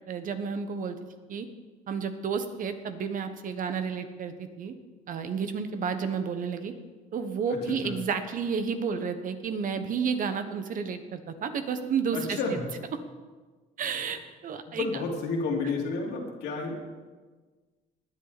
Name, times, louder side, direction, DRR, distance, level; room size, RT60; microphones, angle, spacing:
voice 1, 0.1-1.0 1.3-1.5 1.9-4.7 5.1-6.7 7.1-12.6 13.8-15.0, right 6 dB, 50° right, 9 dB, 1.3 m, -31 dB
voice 2, 7.7-8.0 12.1-12.6 14.7-16.9, left 3 dB, 85° left, 0 dB, 2.9 m, -31 dB
18.5 x 10.0 x 4.2 m, 1.4 s
cardioid pair, 110°, 17 cm